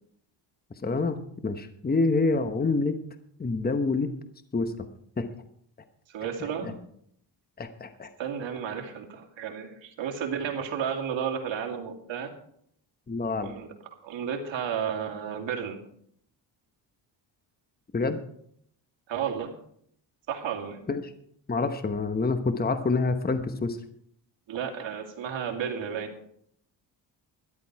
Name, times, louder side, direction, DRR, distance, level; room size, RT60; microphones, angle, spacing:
voice 1, 0.8-3.0 3.4-4.1 4.5-4.7 5.2-5.3 6.6-6.7 7.6-8.1 13.1-13.5 17.9-18.2 20.9-21.0 21.5-23.8, left 3 dB, 20° left, 9 dB, 1.1 m, -27 dB
voice 2, 6.1-6.7 8.2-12.3 13.4-13.7 14.0-15.8 19.1-19.5 20.3-20.8 24.5-26.1, right 7 dB, 70° right, 2 dB, 2.6 m, -32 dB
13.0 x 11.0 x 4.7 m, 0.69 s
cardioid pair, 100°, 46 cm